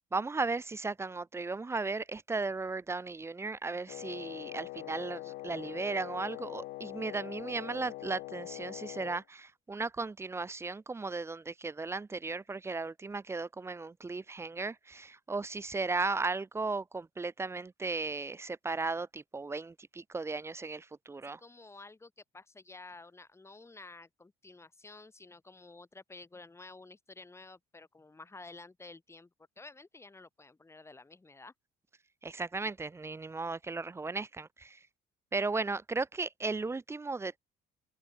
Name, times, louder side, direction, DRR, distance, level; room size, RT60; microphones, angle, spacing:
voice 1, 0.1-21.4 32.2-34.8 35.3-37.4, right 3 dB, 15° right, 0.5 m, -36 dB
Wind instrument woodwind instrument, 3.9-9.2, left 19 dB, 75° left, 0.5 m, -43 dB
voice 2, 21.4-31.5, left 3 dB, 15° left, 2.7 m, -52 dB
cardioid pair, 110°, 17 cm